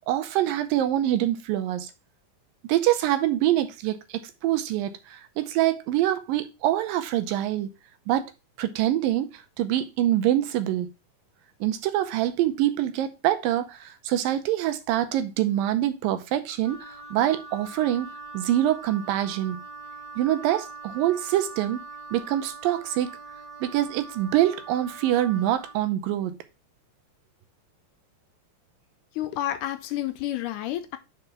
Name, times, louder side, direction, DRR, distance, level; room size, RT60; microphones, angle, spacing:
voice 1, 0.1-1.9 2.7-7.7 8.1-8.2 8.6-9.3 9.6-10.9 11.6-19.6 20.2-21.8 22.1-23.2 23.6-26.4, right 13 dB, 90° right, 2.5 m, -25 dB
Wind instrument woodwind instrument, 16.6-25.8, right 4 dB, 20° right, 1.5 m, -42 dB
voice 2, 29.2-31.0, left 13 dB, 80° left, 2.0 m, -30 dB
5.3 x 4.6 x 5.6 m
omnidirectional pair, 3.9 m